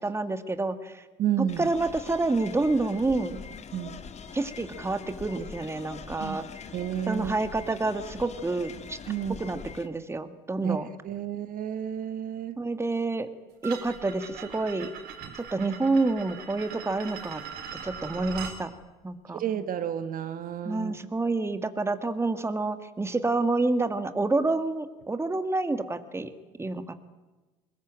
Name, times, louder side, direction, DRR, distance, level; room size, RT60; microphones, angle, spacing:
voice 1, 0.0-1.0 1.6-3.4 4.3-6.4 7.1-9.0 9.4-10.9 12.6-13.3 13.6-14.9 15.5-17.4 17.8-18.7 19.0-19.4 20.6-26.3 26.6-27.0, right 3 dB, 15° right, 10 dB, 1.9 m, -28 dB
voice 2, 1.2-1.7 3.7-4.0 6.2-6.4 6.7-7.3 9.1-9.5 10.6-10.8 11.0-12.6 15.2-15.3 19.3-21.0, right 9 dB, 55° right, 11 dB, 1.7 m, -31 dB
sound 1, 1.5-9.9, left 6 dB, 40° left, 2.0 m, -43 dB
sound 2, 13.6-18.6, right 7 dB, 70° right, 4.5 m, -41 dB
22.0 x 19.0 x 8.9 m, 1.2 s
supercardioid pair, 85°, 17 cm